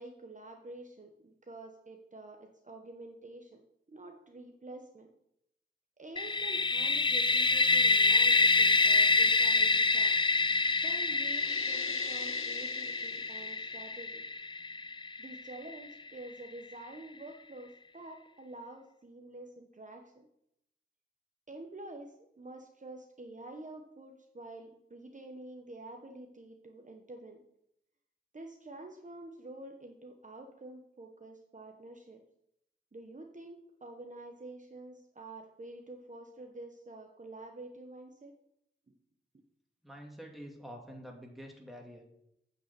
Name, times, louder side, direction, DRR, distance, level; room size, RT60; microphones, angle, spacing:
voice 1, 0.0-3.6 3.9-5.1 6.0-10.2 10.8-14.3 15.2-20.3 21.5-27.4 28.3-32.2 32.9-38.3 38.9-39.0, right 2 dB, 40° right, 3 dB, 1.0 m, -48 dB
sound 1, 6.2-15.9, left 3 dB, 25° left, 0.3 m, -27 dB
sound 2, 11.2-13.8, left 7 dB, 85° left, 0.6 m, -44 dB
voice 2, 39.8-42.1, equal, ahead, 0 dB, 2.2 m, -47 dB
8.9 x 5.3 x 6.8 m, 0.77 s
wide cardioid pair, 75°, 21 cm